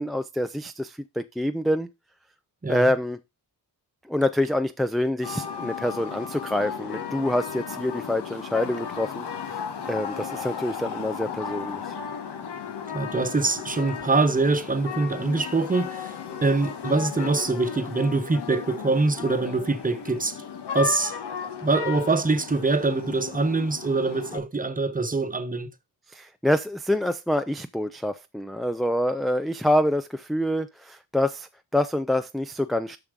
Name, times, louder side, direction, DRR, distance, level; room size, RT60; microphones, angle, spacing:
voice 1, 0.0-1.9 2.7-3.2 4.1-9.6 9.9-11.8 26.1-33.0, left 1 dB, ahead, 0.3 m, -26 dB
sound 1, 5.2-24.4, left 7 dB, 80° left, 1.4 m, -35 dB
voice 2, 12.9-16.1 16.4-20.4 20.7-21.1 21.6-25.7, right 3 dB, 20° right, 0.9 m, -24 dB
7.2 x 6.0 x 5.1 m
cardioid pair, 90°, 40 cm